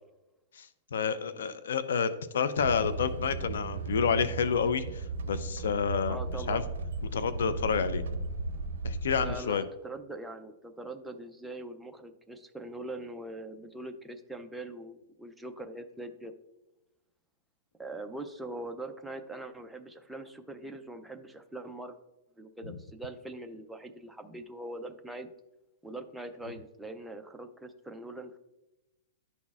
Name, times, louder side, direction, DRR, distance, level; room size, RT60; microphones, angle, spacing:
voice 1, 0.5-6.2 6.5-6.6 7.1-8.0 8.8-9.6 22.7-22.8, left 6 dB, 85° left, 13 dB, 0.4 m, -29 dB
sound 1, 2.6-9.4, right 3 dB, 85° right, 0.5 m, -36 dB
voice 2, 6.1-6.7 9.2-16.3 17.8-22.0 22.4-25.3 25.8-28.4, right 1 dB, ahead, 5 dB, 0.3 m, -42 dB
11.0 x 4.1 x 2.3 m, 0.99 s
hypercardioid pair, 170°, 0 cm